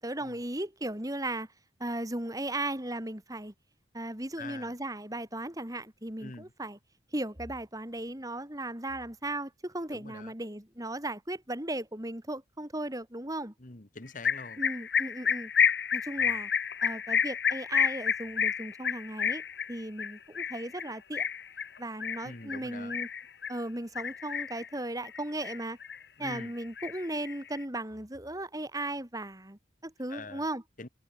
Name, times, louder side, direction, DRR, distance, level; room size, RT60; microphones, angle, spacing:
voice 1, 0.0-1.5 1.8-3.5 3.9-6.8 7.1-13.5 14.6-15.5 15.9-16.5 16.8-19.4 19.7-21.3 21.8-23.1 23.5-25.8 26.2-30.6, right 1 dB, 20° right, 3.0 m, -36 dB
voice 2, 4.4-4.7 6.2-6.5 9.9-10.3 13.6-14.6 22.2-23.0 26.2-26.5 30.1-30.5 30.8-30.9, left 3 dB, 45° left, 1.7 m, -44 dB
sound 1, 14.2-23.6 24.0-24.7 25.0-26.0 26.2-27.6, left 7 dB, 65° left, 1.1 m, -30 dB
head